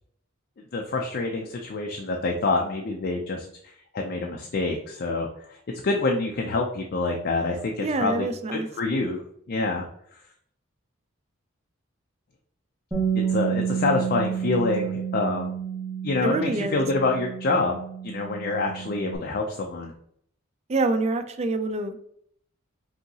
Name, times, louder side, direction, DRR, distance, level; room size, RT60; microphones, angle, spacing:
voice 1, 0.7-3.5 3.9-5.6 5.8-9.2 9.5-9.9 13.1-15.5 16.0-17.8 18.0-19.9, left 3 dB, 50° left, 1 dB, 0.4 m, -26 dB
voice 2, 7.8-8.7 16.2-16.8 20.7-22.0, right 2 dB, 30° right, 9 dB, 0.3 m, -26 dB
Bass guitar, 12.9-19.2, right 7 dB, 10° right, 1.0 m, -30 dB
5.3 x 2.8 x 2.8 m, 0.69 s
head